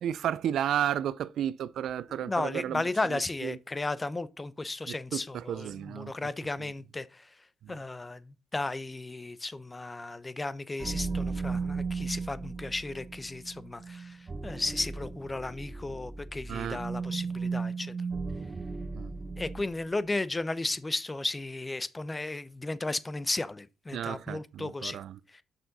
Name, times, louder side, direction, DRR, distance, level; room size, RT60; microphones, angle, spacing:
voice 1, 0.0-2.8 3.1-3.6 4.9-6.1 7.6-7.8 16.5-16.8 18.9-19.1 23.9-25.2, right 10 dB, 70° right, 0.4 m, -33 dB
voice 2, 2.1-17.9 19.4-25.0 25.3-25.4, left 2 dB, 20° left, 0.6 m, -34 dB
sound 1, 10.8-20.0, right 4 dB, 30° right, 0.7 m, -36 dB
7.0 x 6.2 x 4.0 m
cardioid pair, 90°, 0 cm